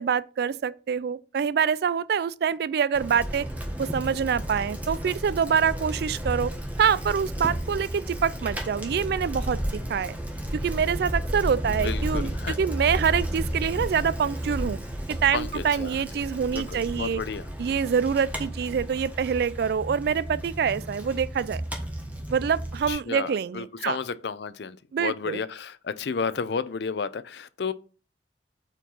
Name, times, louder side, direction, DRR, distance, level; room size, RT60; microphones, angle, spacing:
voice 1, 0.0-3.5 3.8-6.5 6.8-10.2 10.5-14.8 15.1-17.2 17.6-21.6 22.3-24.0 24.9-25.4, right 7 dB, 60° right, 0.3 m, -26 dB
Bicycle, 2.9-22.9, right 1 dB, 10° right, 1.2 m, -33 dB
voice 2, 11.7-12.6 15.3-16.0 16.5-17.5 22.9-27.7, left 5 dB, 65° left, 0.5 m, -32 dB
4.6 x 4.5 x 5.4 m
head